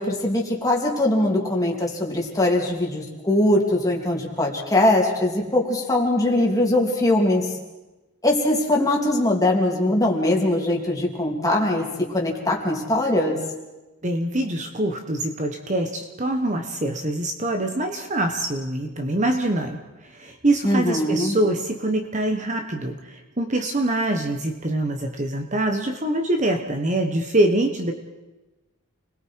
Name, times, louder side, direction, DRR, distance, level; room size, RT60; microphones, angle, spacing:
voice 1, 0.0-7.5 8.2-13.4 20.6-21.4, left 1 dB, 15° left, -1 dB, 3.2 m, -21 dB
voice 2, 14.0-19.8 20.1-27.9, right 1 dB, 35° right, 4 dB, 1.3 m, -24 dB
30.0 x 21.0 x 4.8 m, 1.1 s
head